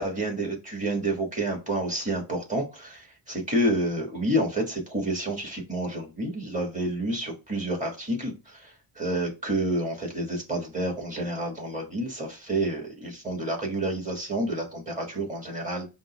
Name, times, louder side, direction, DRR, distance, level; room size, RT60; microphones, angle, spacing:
voice 1, 0.0-8.6 9.0-15.9, right 1 dB, 15° right, -1 dB, 1.5 m, -29 dB
5.2 x 2.2 x 4.0 m, 0.28 s
wide cardioid pair, 120°, 45 cm